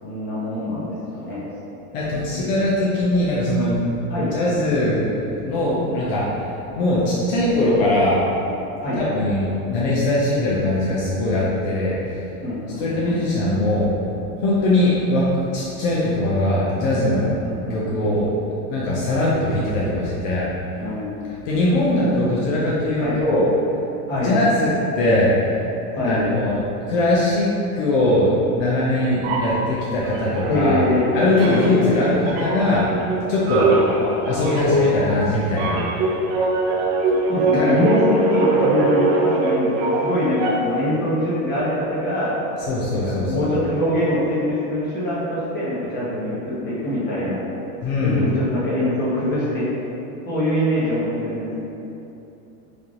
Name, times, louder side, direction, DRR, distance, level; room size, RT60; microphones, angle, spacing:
voice 1, 0.0-1.4 2.1-2.4 4.1-4.3 8.8-9.0 12.4-13.4 17.4-18.1 20.8-21.2 23.0-23.2 24.1-24.4 25.9-26.2 30.5-31.1 31.5-32.0 33.8-34.4 34.7-34.8 37.3-42.4 42.9-47.4 48.0-49.7 50.2-51.6, left 1 dB, 20° left, -9 dB, 1.2 m, -24 dB
voice 2, 1.9-3.8 4.2-6.2 6.8-8.2 9.0-12.2 12.8-13.9 14.4-15.2 15.5-17.3 17.7-18.3 18.7-20.5 21.4-23.5 24.1-25.6 26.0-27.5 27.8-30.8 31.1-32.9 33.3-33.7 34.3-35.8 37.5-37.7 42.7-43.5 47.8-48.2, left 1 dB, 55° left, -6 dB, 0.8 m, -21 dB
sound 1, 29.2-31.0 31.3-40.8, right 2 dB, 35° right, 0.5 m, -22 dB
3.4 x 2.8 x 3.8 m, 2.9 s
supercardioid pair, 135°, 48 cm